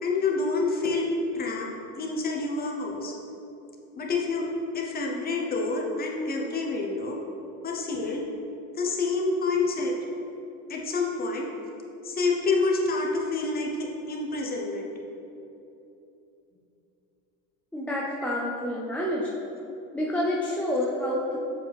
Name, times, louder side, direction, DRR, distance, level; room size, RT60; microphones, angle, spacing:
voice 1, 0.0-1.1 1.3-1.7 1.9-3.2 3.9-4.5 4.7-7.2 7.6-8.2 8.7-9.9 10.7-11.5 12.0-14.9, left 3 dB, 25° left, 0 dB, 0.8 m, -28 dB
voice 2, 17.7-19.3 19.9-21.4, left 1 dB, 5° left, -4 dB, 0.4 m, -28 dB
7.4 x 4.8 x 3.4 m, 2.9 s
cardioid pair, 135°, 35 cm